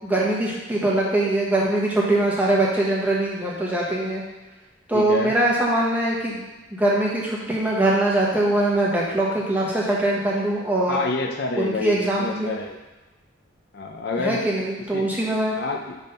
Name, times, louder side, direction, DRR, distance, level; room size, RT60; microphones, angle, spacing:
voice 1, 0.0-4.2 4.9-6.4 6.7-11.0 11.6-12.5 14.2-15.5, right 1 dB, 10° right, -4 dB, 1.1 m, -22 dB
voice 2, 4.9-5.4 10.9-12.8 13.7-14.4 14.9-15.1 15.6-16.0, left 3 dB, 55° left, 2 dB, 0.5 m, -28 dB
6.3 x 3.6 x 5.4 m, 1.1 s
head